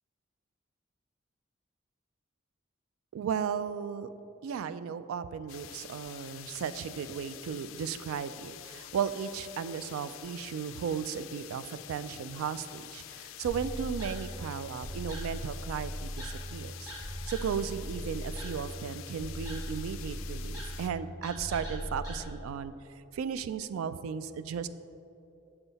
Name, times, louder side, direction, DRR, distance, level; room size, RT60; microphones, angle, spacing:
voice 1, 3.1-4.1 4.4-16.9 17.3-22.7 23.1-24.7, right 7 dB, 90° right, 14 dB, 0.3 m, -35 dB
sound 1, 5.5-20.9, left 13 dB, 75° left, 0.3 m, -47 dB
sound 2, 13.5-22.2, equal, 20° right, 1.4 m, -39 dB
6.9 x 5.6 x 4.0 m, 2.8 s
head